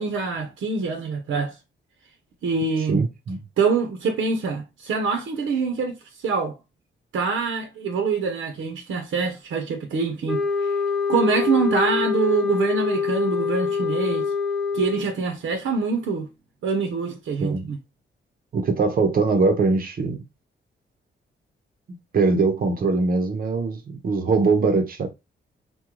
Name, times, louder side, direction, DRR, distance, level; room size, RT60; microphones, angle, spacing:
voice 1, 0.0-1.6 2.4-3.0 3.6-6.0 6.2-6.6 7.1-10.7 11.1-14.3 14.7-16.3 16.6-17.8, right 4 dB, 85° right, 0.7 m, -25 dB
voice 2, 2.9-3.4 17.4-17.7 18.5-20.2 22.1-25.1, right 4 dB, 45° right, 0.6 m, -22 dB
sound 1, 10.3-15.2, left 5 dB, ahead, 0.4 m, -25 dB
3.6 x 2.2 x 3.0 m
wide cardioid pair, 170°, 20 cm